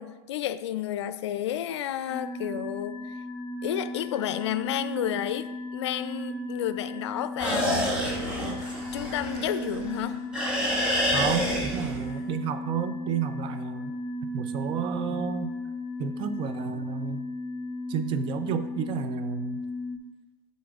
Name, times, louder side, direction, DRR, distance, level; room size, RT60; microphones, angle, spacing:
voice 1, 0.0-3.2 3.6-8.0 8.9-10.2, left 11 dB, 85° left, 13 dB, 0.4 m, -31 dB
sound 1, 2.1-20.0, left 1 dB, 25° left, 1.0 m, -35 dB
sound 2, 7.4-10.0 10.3-12.1, equal, 5° right, 1.6 m, -28 dB
voice 2, 11.1-14.0 14.3-15.5 16.0-17.3 17.9-19.7, right 7 dB, 35° right, 10 dB, 0.5 m, -31 dB
11.5 x 4.1 x 2.4 m, 1.1 s
supercardioid pair, 135°, 14 cm